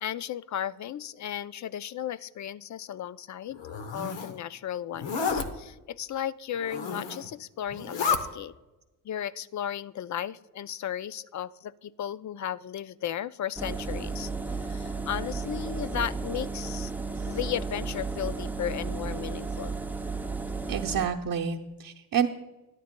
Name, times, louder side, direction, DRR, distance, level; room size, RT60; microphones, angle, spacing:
voice 1, 0.0-3.6 3.9-8.5 9.0-14.3 14.7-16.9 17.3-19.8, left 10 dB, 45° left, 17 dB, 0.4 m, -35 dB
Zipper (clothing), 3.6-4.3 4.9-5.5 6.6-7.3 7.7-8.2, left 5 dB, 75° left, 1.0 m, -31 dB
Engine, 13.6-21.1, right 4 dB, 5° right, 0.6 m, -33 dB
voice 2, 20.7-22.3, right 7 dB, 50° right, -1 dB, 0.8 m, -28 dB
16.5 x 11.0 x 2.2 m, 1.0 s
supercardioid pair, 55°, 43 cm